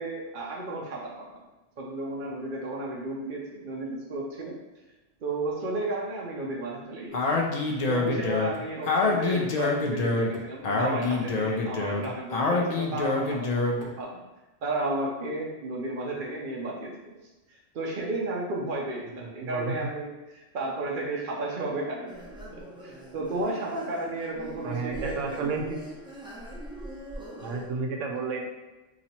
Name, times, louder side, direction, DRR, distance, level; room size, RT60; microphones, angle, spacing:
voice 1, 0.0-1.4 1.8-4.6 5.2-7.4 7.9-14.2 14.6-17.2 17.5-22.2 22.5-25.6, right 2 dB, 55° right, -3 dB, 0.7 m, -33 dB
Speech, 7.1-13.9, left 3 dB, 75° left, 0.3 m, -26 dB
voice 2, 19.4-19.7 24.6-25.8 27.4-28.4, right 4 dB, 85° right, 2 dB, 1.0 m, -31 dB
sound 1, 22.1-27.7, right 1 dB, 5° right, 0.5 m, -42 dB
2.9 x 2.8 x 4.2 m, 1.1 s
omnidirectional pair, 1.3 m